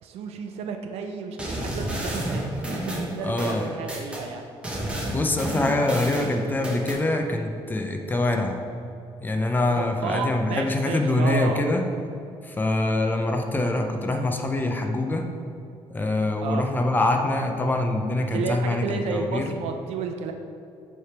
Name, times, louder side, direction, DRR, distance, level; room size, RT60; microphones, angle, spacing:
voice 1, 0.0-4.4 9.8-11.6 16.4-16.7 18.3-20.3, right 5 dB, 80° right, 5 dB, 0.6 m, -32 dB
sound 1, 1.4-4.2 4.6-7.0, right 1 dB, 10° right, 1.0 m, -30 dB
voice 2, 3.2-3.7 5.1-8.7 9.2-11.9 12.4-15.3 15.9-19.5, left 2 dB, 20° left, 4 dB, 0.5 m, -24 dB
7.5 x 3.4 x 4.5 m, 2.6 s
cardioid pair, 140°, 10 cm